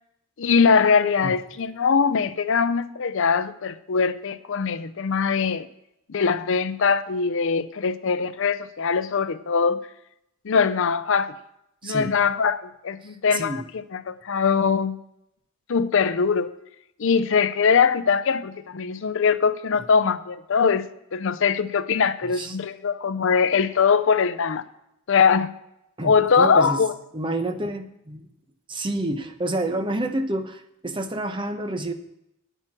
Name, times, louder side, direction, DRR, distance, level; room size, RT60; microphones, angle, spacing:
voice 1, 0.4-5.7 6.1-9.8 10.4-11.3 11.8-13.6 13.9-15.0 15.7-16.5 17.0-24.6 25.1-25.5 26.0-26.9, left 5 dB, 65° left, 0.5 m, -22 dB
voice 2, 11.8-12.1 13.3-13.6 22.3-22.6 26.0-26.8 27.1-28.3 28.7-31.9, right 1 dB, 25° right, 0.9 m, -28 dB
9.0 x 9.0 x 6.0 m
head